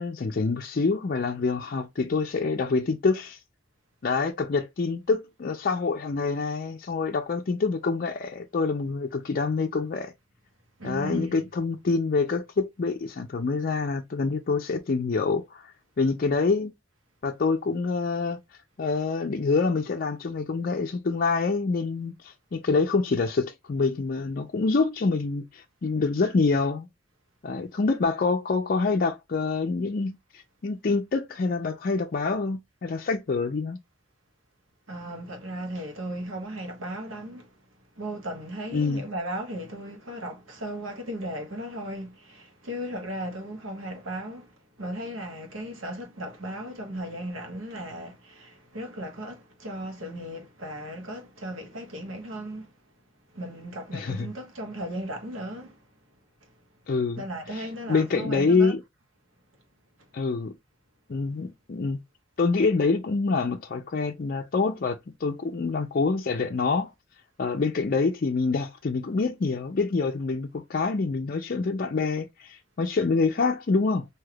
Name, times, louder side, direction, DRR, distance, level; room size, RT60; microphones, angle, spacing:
voice 1, 0.0-3.4 4.0-10.1 10.8-15.6 16.0-16.7 17.2-18.4 18.8-26.9 27.4-30.2 30.6-33.8 38.7-39.0 53.9-54.3 56.9-57.2 57.9-58.8 60.1-60.6 61.1-62.0 62.4-66.9 67.4-74.1, left 4 dB, 45° left, 0.4 m, -26 dB
voice 2, 10.8-11.5 34.9-37.5 38.0-52.7 53.3-55.8 56.4-56.5 57.2-58.7, right 1 dB, 90° right, 1.2 m, -36 dB
3.3 x 2.8 x 2.2 m
head